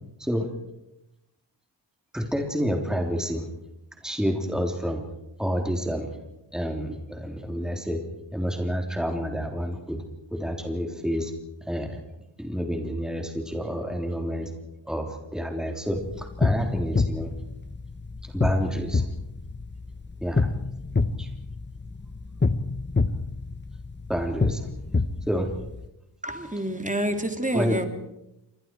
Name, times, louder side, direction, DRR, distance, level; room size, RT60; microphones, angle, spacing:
voice 1, 2.1-3.4 4.0-5.0 5.4-6.1 6.5-8.0 8.3-10.0 10.3-11.3 11.7-12.0 12.4-14.5 14.9-17.3 18.3-19.0 20.2-20.5 21.2-21.3 24.1-24.7 25.3-25.5 27.5-27.8, equal, ahead, 3 dB, 3.3 m, -28 dB
sound 1, 15.9-25.9, left 3 dB, 25° left, 1.0 m, -27 dB
voice 2, 26.2-27.9, right 1 dB, 15° right, 5 dB, 2.8 m, -27 dB
28.5 x 24.5 x 4.7 m, 0.87 s
wide cardioid pair, 65°, 44 cm